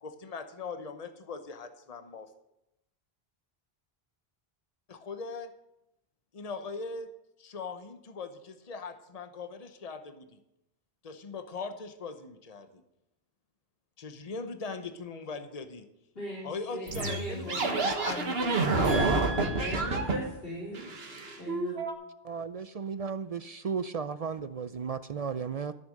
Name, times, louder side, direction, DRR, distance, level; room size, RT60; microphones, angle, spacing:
voice 1, 0.0-2.3 4.9-5.5 6.3-7.1 7.4-10.4 11.0-12.8 14.0-15.9 16.4-19.9, left 4 dB, 40° left, 7 dB, 1.0 m, -40 dB
voice 2, 16.1-17.8 18.8-20.8 21.4-21.8, right 1 dB, 65° left, -8 dB, 4.3 m, -38 dB
sound 1, 16.9-20.3 20.7-21.9, right 3 dB, 70° right, 1.6 m, -29 dB
voice 3, 22.2-25.7, right 6 dB, 50° right, 12 dB, 0.4 m, -35 dB
14.5 x 6.9 x 6.4 m, 0.85 s
omnidirectional pair, 1.1 m